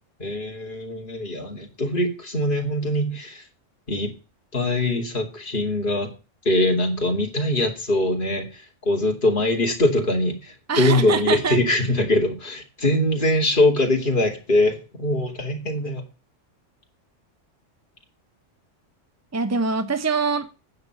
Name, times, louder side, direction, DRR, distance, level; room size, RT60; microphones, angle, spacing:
voice 1, 0.2-3.4 3.9-4.1 4.5-6.1 6.4-16.0, left 1 dB, 45° left, 2.9 m, -22 dB
voice 2, 10.7-11.6 19.3-20.5, right 5 dB, 15° right, 0.8 m, -24 dB
9.5 x 6.7 x 7.8 m
omnidirectional pair, 1.3 m